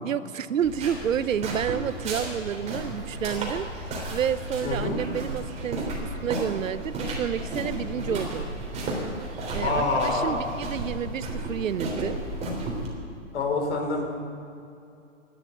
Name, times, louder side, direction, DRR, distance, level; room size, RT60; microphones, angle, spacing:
voice 1, 0.0-8.5 9.5-12.2, right 9 dB, 85° right, 15 dB, 0.9 m, -30 dB
sound 1, 0.6-12.9, right 1 dB, 15° right, 3.6 m, -33 dB
voice 2, 4.6-5.0 7.9-8.2 9.6-10.4 13.3-14.1, left 3 dB, 60° left, 3 dB, 4.5 m, -26 dB
13.5 x 10.5 x 9.1 m, 2.6 s
hypercardioid pair, 145°, 38 cm